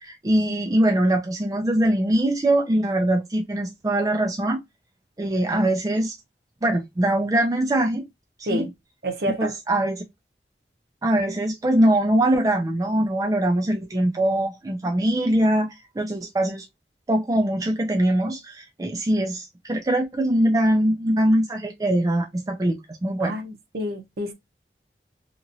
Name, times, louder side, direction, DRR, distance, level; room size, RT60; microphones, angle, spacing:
voice 1, 0.0-4.6 5.2-6.2 6.6-8.1 8.5-8.7 9.4-10.0 11.0-15.7 16.0-16.6 17.1-23.4, right 1 dB, 20° right, 0.4 m, -22 dB
voice 2, 9.0-9.5 23.2-24.3, equal, 60° right, 0.8 m, -28 dB
2.9 x 2.5 x 2.6 m
head